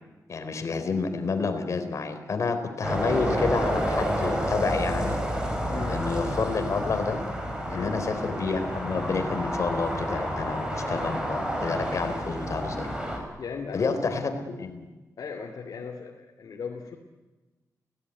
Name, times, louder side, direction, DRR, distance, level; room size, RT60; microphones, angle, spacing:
voice 1, 0.3-5.2 5.9-7.2 7.7-12.9 13.7-14.9, left 4 dB, 55° left, 7 dB, 3.6 m, -29 dB
sound 1, 2.8-13.2, equal, 15° right, 5.8 m, -29 dB
voice 2, 5.7-6.0 7.7-8.0 13.4-14.2 15.2-16.9, left 5 dB, 75° left, 1 dB, 2.8 m, -37 dB
29.5 x 17.5 x 9.8 m, 1.2 s
wide cardioid pair, 135°, 6 cm